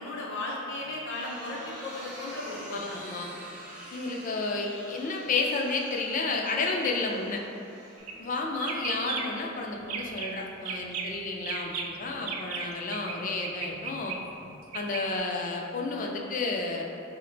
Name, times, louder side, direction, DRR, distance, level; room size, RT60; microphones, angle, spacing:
voice 1, 0.0-3.0, left 2 dB, 60° left, -3 dB, 0.7 m, -36 dB
sound 1, 0.7-8.6, right 1 dB, 5° right, 0.6 m, -46 dB
voice 2, 2.7-3.3 3.9-7.4 8.2-14.2 14.7-16.9, left 3 dB, 40° left, 0 dB, 0.3 m, -31 dB
sound 2, 8.0-8.2 8.5-9.5 9.8-10.3 10.6-13.1 13.4-15.0, right 5 dB, 90° right, 0.4 m, -36 dB
4.4 x 2.1 x 3.8 m, 2.8 s
head